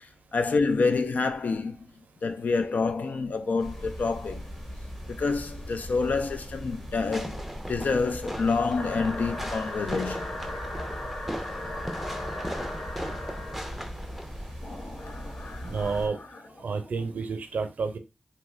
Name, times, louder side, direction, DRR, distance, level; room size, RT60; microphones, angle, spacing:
voice 1, 0.0-1.9 2.2-4.4 5.1-10.3 15.0-15.9, left 4 dB, 75° left, 0.4 m, -28 dB
sound 1, 3.6-16.1, equal, 15° left, 1.1 m, -40 dB
Fireworks, 7.1-14.5, equal, ahead, 0.6 m, -38 dB
sound 2, 8.7-13.8 14.6-17.1, left 1 dB, 50° left, 0.8 m, -39 dB
voice 2, 15.6-16.2 16.6-18.0, right 4 dB, 80° right, 0.5 m, -30 dB
2.9 x 2.2 x 3.2 m
cardioid pair, 45°, 3 cm